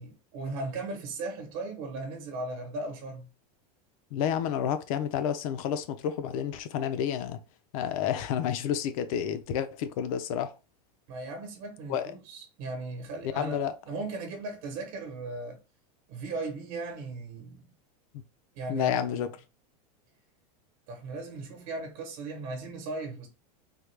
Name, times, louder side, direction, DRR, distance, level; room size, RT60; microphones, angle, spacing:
voice 1, 0.0-3.3 11.1-15.6 16.1-17.7 18.5-19.3 20.9-23.3, right 3 dB, 45° right, 1.0 m, -37 dB
voice 2, 4.1-7.4 7.7-10.5 11.9-12.1 13.3-13.7 18.7-19.3, left 9 dB, 60° left, 0.6 m, -30 dB
3.6 x 2.3 x 3.2 m
supercardioid pair, 145°, 20 cm